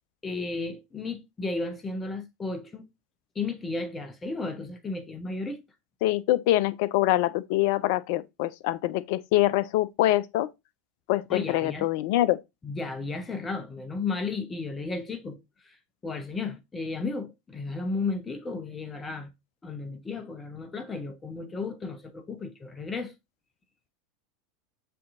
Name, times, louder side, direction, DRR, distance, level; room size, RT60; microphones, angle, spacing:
voice 1, 0.2-2.9 3.3-5.6 11.3-11.9 12.6-15.4 15.6-15.8 16.0-19.3 19.6-23.1, left 3 dB, 20° left, 0.7 m, -34 dB
voice 2, 6.0-10.5 11.1-12.4, left 15 dB, 55° left, 0.3 m, -24 dB
7.5 x 2.7 x 2.4 m
figure-of-eight pair, 85°, 0 cm